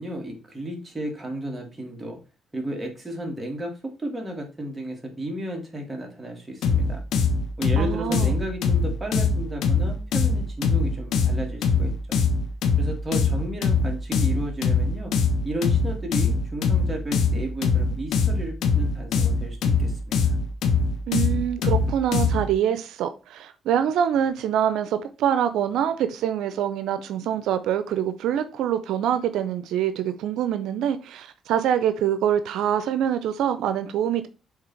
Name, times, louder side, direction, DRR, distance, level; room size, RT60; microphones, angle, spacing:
voice 1, 0.0-2.2 2.5-7.0 7.6-12.2 12.8-15.1 15.4-20.3, right 1 dB, 15° right, 2.7 m, -33 dB
sound 1, 6.6-22.5, left 4 dB, 75° left, 1.2 m, -23 dB
voice 2, 7.8-8.4 21.1-34.3, right 9 dB, 85° right, 0.5 m, -25 dB
6.6 x 4.0 x 4.5 m
cardioid pair, 90°, 0 cm